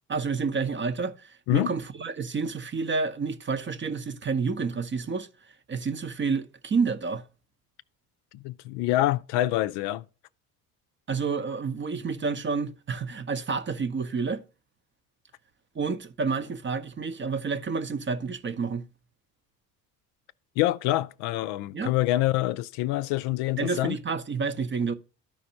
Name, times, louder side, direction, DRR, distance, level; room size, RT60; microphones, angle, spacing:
voice 1, 0.1-5.3 5.7-7.2 11.1-14.4 15.7-18.9 21.7-21.9 23.6-24.9, right 5 dB, 25° right, 0.7 m, -29 dB
voice 2, 8.3-10.0 20.6-24.0, left 16 dB, 55° left, 0.5 m, -26 dB
13.0 x 5.1 x 2.8 m
hypercardioid pair, 60°, 48 cm